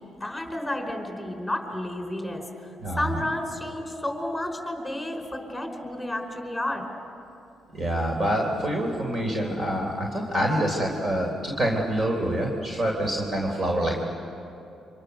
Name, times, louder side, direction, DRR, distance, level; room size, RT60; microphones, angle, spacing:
voice 1, 0.2-2.5 3.0-6.9, left 1 dB, 5° left, 3 dB, 4.7 m, -31 dB
voice 2, 2.8-3.2 7.7-14.0, right 1 dB, 40° right, 0 dB, 3.8 m, -26 dB
28.5 x 25.5 x 6.8 m, 2.6 s
cardioid pair, 90°, 0 cm